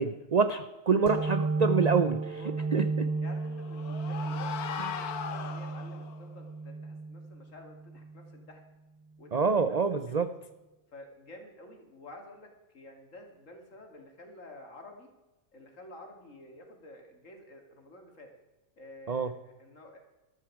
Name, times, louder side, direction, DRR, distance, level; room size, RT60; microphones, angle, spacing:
voice 1, 0.0-2.2 2.7-3.1 4.8-5.0 9.3-10.3 19.1-19.3, right 5 dB, 70° right, 10 dB, 0.3 m, -26 dB
sound 1, 1.1-8.4, right 3 dB, 25° right, 1.0 m, -33 dB
voice 2, 1.6-2.7 3.2-8.6 9.2-10.3 10.9-12.5 12.7-15.1 15.5-18.3 18.8-20.0, left 1 dB, 55° left, 3 dB, 2.8 m, -50 dB
sound 2, 3.2-6.2, left 7 dB, 90° left, 1.6 m, -38 dB
14.0 x 12.0 x 4.8 m, 1.1 s
omnidirectional pair, 1.6 m